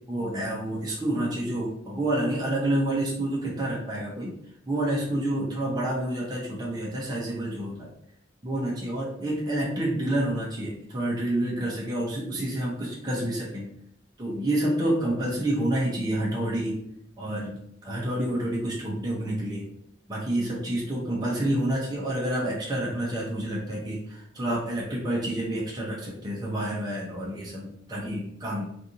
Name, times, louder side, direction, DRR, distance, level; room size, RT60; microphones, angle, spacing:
voice 1, 0.0-4.4 4.7-7.9 8.4-13.7 14.2-16.8 17.2-19.6 20.1-28.6, right 1 dB, 20° right, -5 dB, 0.8 m, -28 dB
3.2 x 2.5 x 2.7 m, 0.70 s
head